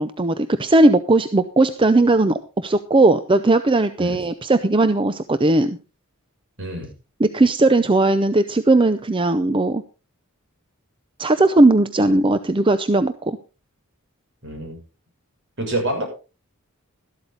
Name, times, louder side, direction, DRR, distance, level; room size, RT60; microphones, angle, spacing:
voice 1, 0.0-5.8 7.2-9.8 11.2-13.4, right 2 dB, 25° right, 11 dB, 0.6 m, -18 dB
voice 2, 6.6-6.9 14.4-14.8 15.6-16.0, right 1 dB, 60° right, 1 dB, 6.9 m, -26 dB
13.0 x 12.5 x 3.9 m, 0.32 s
head